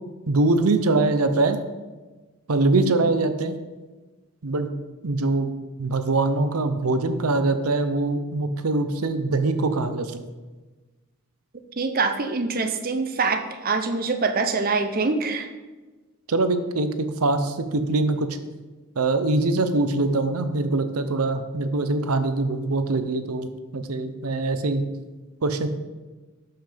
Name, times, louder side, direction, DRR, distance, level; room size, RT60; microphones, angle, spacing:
voice 1, 0.3-1.6 2.5-3.6 4.4-4.7 5.0-5.5 5.8-10.2 16.3-18.3 19.0-24.8 25.4-25.7, right 2 dB, 80° right, 9 dB, 0.7 m, -23 dB
voice 2, 11.8-15.5, right 4 dB, 40° right, 7 dB, 0.7 m, -24 dB
13.0 x 5.7 x 3.5 m, 1.2 s
head